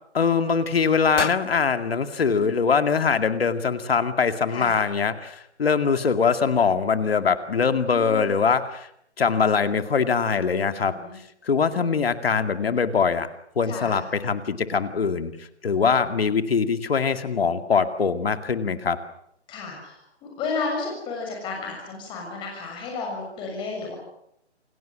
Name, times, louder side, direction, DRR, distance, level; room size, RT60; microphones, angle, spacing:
voice 1, 0.1-8.9 9.2-10.9 11.4-13.3 13.6-19.0, left 5 dB, 60° left, 9 dB, 2.3 m, -22 dB
sound 1, 1.2-3.3, left 4 dB, 90° left, 1.5 m, -34 dB
voice 2, 7.9-8.4 10.5-11.2 13.7-14.0 19.5-24.0, left 4 dB, 15° left, 1 dB, 6.8 m, -33 dB
28.5 x 19.0 x 7.5 m, 0.73 s
figure-of-eight pair, 155°, 34 cm